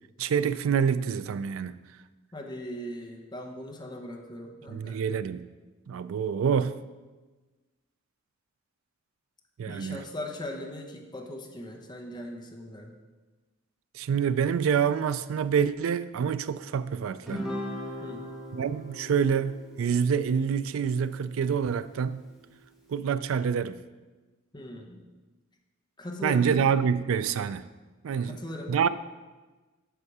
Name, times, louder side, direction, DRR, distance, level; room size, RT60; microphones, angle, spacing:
voice 1, 0.2-1.8 4.7-5.5 5.9-6.8 9.6-10.0 13.9-17.5 18.5-22.2 22.9-23.8 26.2-27.7 28.0-28.4 28.7-28.9, right 7 dB, 80° right, 0.4 m, -27 dB
voice 2, 2.3-5.0 9.7-13.0 18.0-18.2 24.5-25.0 26.0-26.5 28.2-28.9, left 1 dB, 20° left, 0.8 m, -39 dB
Guitar, 17.2-21.9, equal, ahead, 1.1 m, -39 dB
8.0 x 5.8 x 4.8 m
head